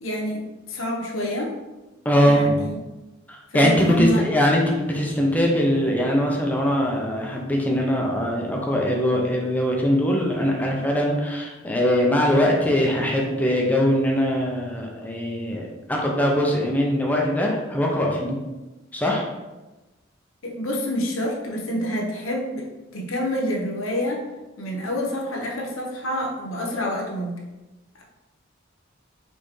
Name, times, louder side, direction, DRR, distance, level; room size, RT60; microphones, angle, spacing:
voice 1, 0.0-0.4 0.7-1.5 2.2-2.8 3.5-4.2 20.4-22.7 22.9-24.2 24.6-27.3, equal, 90° left, -1 dB, 0.9 m, -27 dB
voice 2, 2.0-2.7 3.3-18.4 18.9-19.3, equal, 10° left, -1 dB, 0.6 m, -21 dB
4.3 x 3.3 x 3.1 m, 1.1 s
head